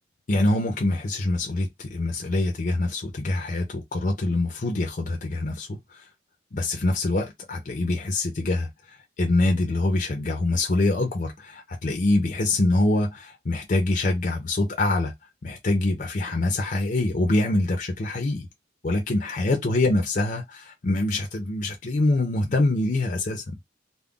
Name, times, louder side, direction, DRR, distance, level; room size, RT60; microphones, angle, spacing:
voice 1, 0.3-6.0 6.5-8.7 9.2-15.1 15.4-18.5 18.8-23.6, left 2 dB, 45° left, 0.5 m, -25 dB
2.4 x 2.1 x 3.6 m
head